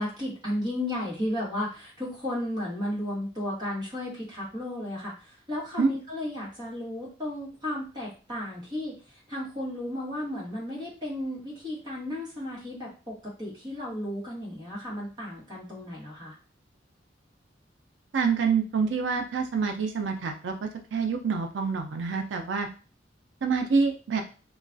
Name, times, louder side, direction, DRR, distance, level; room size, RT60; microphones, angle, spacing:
voice 1, 0.0-16.4, left 1 dB, 25° right, -5 dB, 1.3 m, -34 dB
voice 2, 18.1-22.7 23.4-24.2, right 5 dB, 90° right, 5 dB, 0.4 m, -27 dB
3.0 x 2.3 x 2.5 m, 0.35 s
head